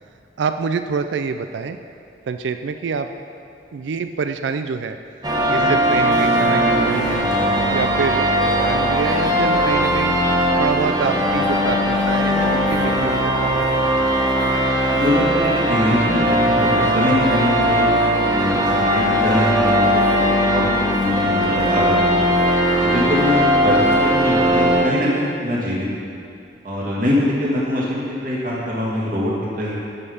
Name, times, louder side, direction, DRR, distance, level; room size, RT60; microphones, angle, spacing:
voice 1, 0.4-1.8 2.3-3.1 3.7-5.0 5.5-7.2 7.7-10.2 10.6-13.9, right 5 dB, 80° right, 8 dB, 0.4 m, -26 dB
sound 1, 5.2-24.8, equal, 25° right, 0.8 m, -18 dB
voice 2, 14.9-17.9 18.4-18.5 18.9-22.3 22.8-26.1 26.6-29.7, left 1 dB, 50° right, -6 dB, 2.3 m, -23 dB
11.0 x 5.5 x 5.6 m, 2.4 s
head